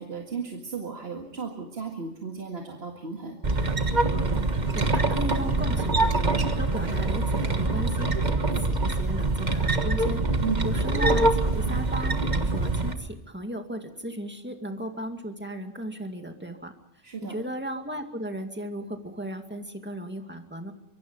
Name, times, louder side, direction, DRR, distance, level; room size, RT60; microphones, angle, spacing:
voice 1, 0.0-3.4 10.4-10.7 17.0-17.4, right 5 dB, 60° right, 2 dB, 2.2 m, -34 dB
sound 1, 3.4-12.9, right 2 dB, 40° right, 1.6 m, -24 dB
voice 2, 4.7-16.7 17.2-20.7, right 1 dB, 10° right, 5 dB, 2.2 m, -36 dB
24.5 x 23.5 x 5.6 m, 0.79 s
omnidirectional pair, 1.2 m